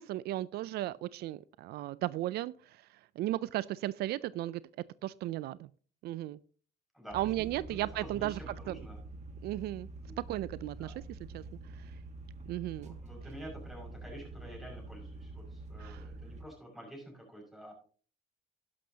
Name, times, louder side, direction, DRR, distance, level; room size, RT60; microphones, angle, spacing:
voice 1, 0.0-4.6 5.0-5.7 6.0-6.4 7.1-8.4 8.7-8.8 9.4-9.9 10.3-11.4 11.7-11.9 12.5-13.0 15.8-16.0, right 15 dB, 70° right, 0.4 m, -35 dB
voice 2, 6.9-9.0 10.0-10.2 10.8-11.0 12.8-17.7, right 1 dB, ahead, 5.9 m, -49 dB
sound 1, 7.1-16.4, right 2 dB, 45° right, 1.4 m, -46 dB
11.5 x 11.0 x 2.8 m
cardioid pair, 110°, 17 cm